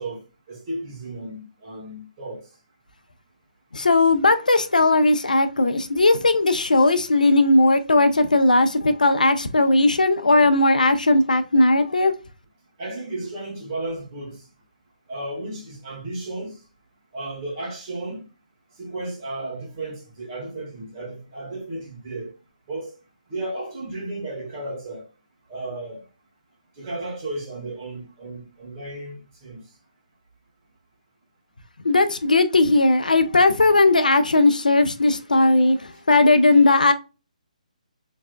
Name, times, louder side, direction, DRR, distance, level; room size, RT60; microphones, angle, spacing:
voice 1, 0.0-2.5 12.8-14.4 15.1-16.6 17.1-18.3 18.8-22.3 22.7-22.9 23.3-25.0 25.5-26.0 26.8-29.6, right 2 dB, 35° right, 1.7 m, -34 dB
voice 2, 3.7-12.2 31.8-36.9, left 2 dB, 85° left, 0.5 m, -17 dB
3.4 x 3.2 x 2.2 m
figure-of-eight pair, 145°, 4 cm